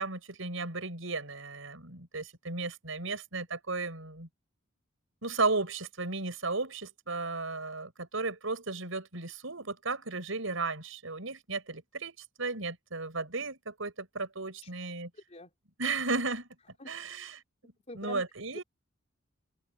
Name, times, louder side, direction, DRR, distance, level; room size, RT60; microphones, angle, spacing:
voice 1, 0.0-4.3 5.2-15.1 15.8-16.5 16.9-17.4 17.9-18.6, right 3 dB, 80° right, 6.0 m, -34 dB
voice 2, 15.1-15.5 16.8-17.2 17.9-18.2, left 2 dB, 35° left, 3.3 m, -46 dB
head